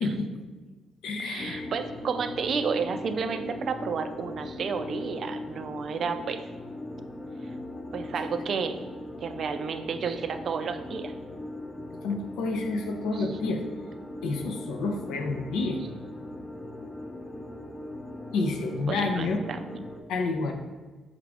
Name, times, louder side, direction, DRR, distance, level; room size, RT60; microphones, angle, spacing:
voice 1, 0.0-0.3 1.0-1.7 12.0-13.6 14.2-15.8 18.3-19.4 20.1-20.5, left 3 dB, 85° left, 4 dB, 0.5 m, -29 dB
voice 2, 1.2-6.4 7.9-8.8 9.2-11.1 18.9-19.6, right 6 dB, 60° right, 8 dB, 0.3 m, -31 dB
sound 1, 1.4-20.0, left 1 dB, 25° left, 0.4 m, -39 dB
4.9 x 2.4 x 3.3 m, 1.3 s
cardioid pair, 90°, 0 cm